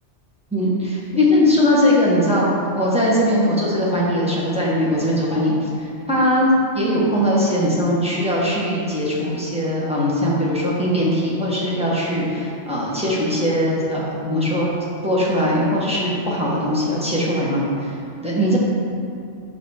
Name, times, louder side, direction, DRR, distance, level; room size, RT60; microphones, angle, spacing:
voice 1, 0.5-14.7 15.0-17.9 18.2-18.6, left 1 dB, 5° right, -7 dB, 1.4 m, -20 dB
8.7 x 3.1 x 6.3 m, 2.4 s
omnidirectional pair, 1.2 m